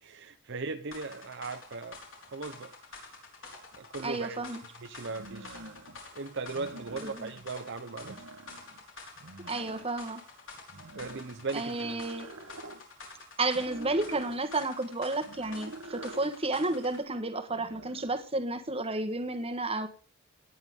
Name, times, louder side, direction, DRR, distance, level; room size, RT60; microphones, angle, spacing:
voice 1, 0.0-2.0 2.3-2.7 3.8-4.4 4.8-5.6 6.1-8.2 10.9-12.0, right 4 dB, 55° right, 0.8 m, -38 dB
sound 1, 0.9-17.0, left 3 dB, 60° left, 4.7 m, -49 dB
sound 2, 3.7-3.8 5.1-6.0 6.5-7.5 7.9-8.8 9.2-10.1 10.7-12.8 13.5-14.4 15.2-16.3 17.5-18.2, right 2 dB, 85° right, 1.4 m, -47 dB
voice 2, 4.0-4.6 7.0-7.3 9.5-10.2 11.5-12.3 13.4-19.9, right 2 dB, 25° right, 1.5 m, -32 dB
18.0 x 10.5 x 3.8 m
head